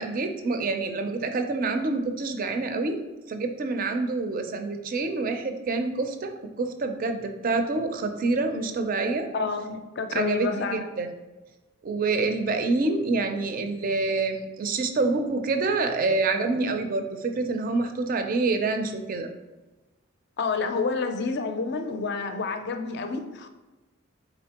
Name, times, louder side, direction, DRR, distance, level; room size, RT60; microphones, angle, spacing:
voice 1, 0.0-3.0 3.3-6.3 6.6-9.3 10.1-11.1 11.8-19.3, right 3 dB, 40° right, 6 dB, 0.4 m, -27 dB
voice 2, 9.3-10.8 20.4-23.5, left 4 dB, 50° left, 8 dB, 0.4 m, -29 dB
4.2 x 3.9 x 2.9 m, 1.1 s
head